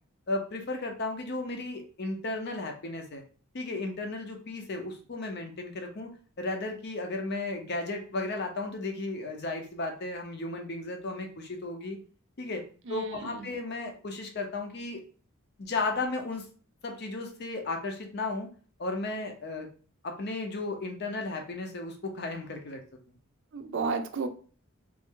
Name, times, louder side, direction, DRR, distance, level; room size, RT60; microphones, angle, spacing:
voice 1, 0.3-3.2 3.5-6.1 6.4-12.0 12.4-12.6 12.9-15.0 15.6-16.4 16.8-18.5 18.8-19.7 20.0-22.8, left 2 dB, 50° left, 4 dB, 0.6 m, -34 dB
voice 2, 12.9-13.5 23.5-24.3, right 4 dB, 55° right, 8 dB, 0.4 m, -32 dB
3.2 x 2.5 x 3.6 m, 0.41 s
head